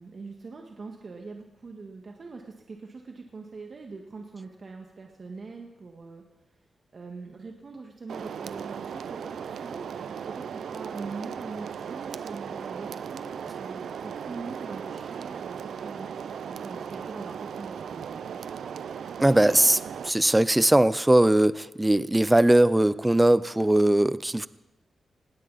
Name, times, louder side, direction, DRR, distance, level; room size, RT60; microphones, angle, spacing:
voice 1, 0.0-6.2 6.9-18.4, right 4 dB, 50° right, 2 dB, 1.7 m, -42 dB
sound 1, 8.1-20.1, right 7 dB, 85° right, 0.5 m, -37 dB
voice 2, 19.2-24.5, right 1 dB, 10° right, 16 dB, 0.5 m, -20 dB
19.5 x 17.0 x 4.1 m, 1.0 s
cardioid pair, 95°, 0 cm